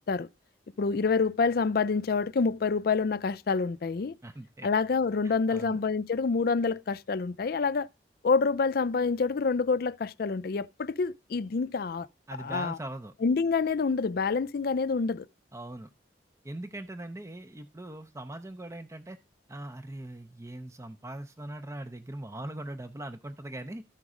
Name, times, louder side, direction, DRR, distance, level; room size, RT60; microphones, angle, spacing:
voice 1, 0.8-4.2 4.6-7.9 8.2-12.1 12.4-12.8 13.2-15.3, left 4 dB, 55° left, 0.4 m, -27 dB
voice 2, 4.2-4.7 5.2-5.8 12.3-13.1 15.5-15.9 16.4-19.2 19.5-23.8, right 1 dB, 15° right, 0.5 m, -41 dB
13.0 x 5.2 x 4.9 m
head